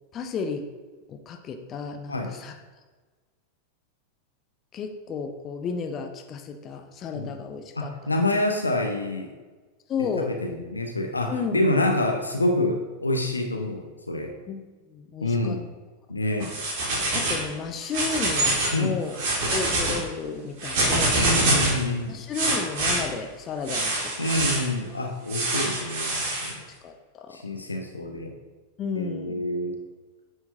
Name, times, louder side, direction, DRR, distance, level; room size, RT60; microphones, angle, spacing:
voice 1, 0.1-0.7 1.1-2.6 4.7-7.9 9.9-10.3 11.3-11.6 14.5-15.6 16.4-16.5 17.1-21.2 22.1-24.3 24.9-25.1 26.8-27.4 28.8-29.4, left 5 dB, 30° left, 5 dB, 0.6 m, -33 dB
voice 2, 7.8-9.3 10.2-14.3 15.2-15.6 16.1-16.5 18.7-19.0 21.1-22.2 24.2-26.6 27.3-28.3 28.9-29.8, left 1 dB, 80° left, 3 dB, 0.7 m, -27 dB
sound 1, 16.4-17.4 17.8-18.8 19.1-20.0 20.6-21.8 22.3-23.0 23.7-24.6 25.3-26.5, right 2 dB, 45° right, 1.8 m, -25 dB
9.2 x 4.5 x 2.7 m, 1.3 s
figure-of-eight pair, 90°, 0 cm